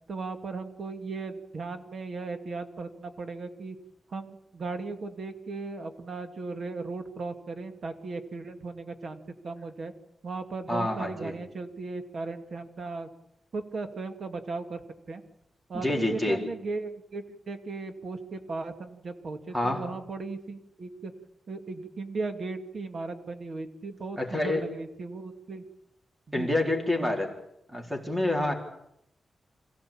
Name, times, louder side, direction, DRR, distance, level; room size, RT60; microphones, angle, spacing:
voice 1, 0.1-3.8 4.1-9.9 10.2-13.1 13.5-14.8 15.1-15.2 15.7-21.1 21.5-25.6 26.3-26.7, right 3 dB, 50° right, 7 dB, 2.3 m, -37 dB
voice 2, 10.7-11.3 15.7-16.4 19.5-19.8 24.2-24.6 26.3-27.3 27.7-28.5, left 1 dB, 10° right, 2 dB, 4.1 m, -27 dB
27.5 x 16.5 x 8.7 m, 0.80 s
wide cardioid pair, 170°, 0 cm